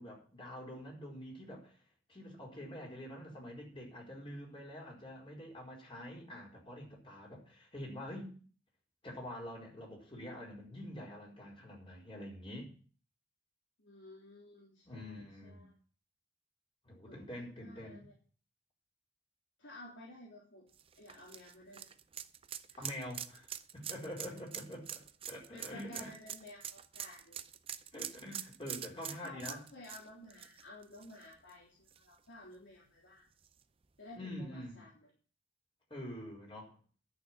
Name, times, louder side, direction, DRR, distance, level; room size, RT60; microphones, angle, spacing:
voice 1, 0.0-1.8 2.1-8.3 9.0-12.7 14.8-15.7 16.8-18.0 22.8-25.0 25.3-26.1 27.9-29.6 34.1-34.8 35.9-36.8, left 1 dB, 30° left, -1 dB, 4.7 m, -46 dB
voice 2, 13.8-15.7 17.0-18.1 19.6-20.7 21.0-21.9 22.7-22.9 25.5-27.4 29.1-33.3 34.0-35.1, left 1 dB, 80° left, -4 dB, 3.5 m, -53 dB
sound 1, 20.7-31.5 31.9-32.0 33.4-33.5, right 9 dB, 30° right, 0.5 m, -45 dB
11.0 x 6.7 x 8.4 m, 0.41 s
head